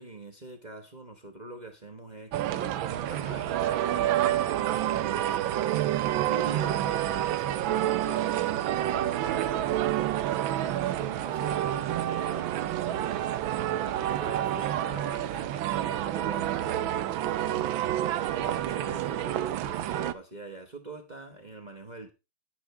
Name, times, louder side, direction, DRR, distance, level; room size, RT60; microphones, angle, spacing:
voice 1, 0.0-10.2 10.6-22.1, right 2 dB, 30° right, 0.8 m, -43 dB
sound 1, 2.3-20.1, right 12 dB, 75° right, 1.4 m, -28 dB
10.5 x 9.6 x 3.3 m
omnidirectional pair, 2.3 m